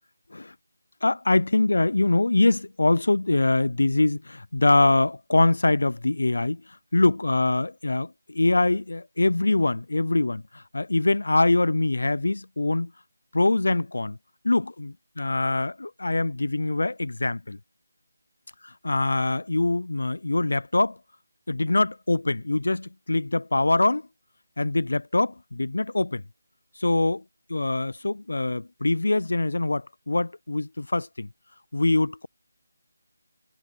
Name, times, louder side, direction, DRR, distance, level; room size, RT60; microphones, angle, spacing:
voice 1, 1.0-6.6 6.9-12.9 13.3-14.2 14.4-17.6 18.8-21.0 21.5-24.0 24.6-26.2 26.8-27.2 27.5-31.3 31.7-32.3, left 2 dB, 80° left, 0.4 m, -23 dB
figure-of-eight pair, 175°, 0 cm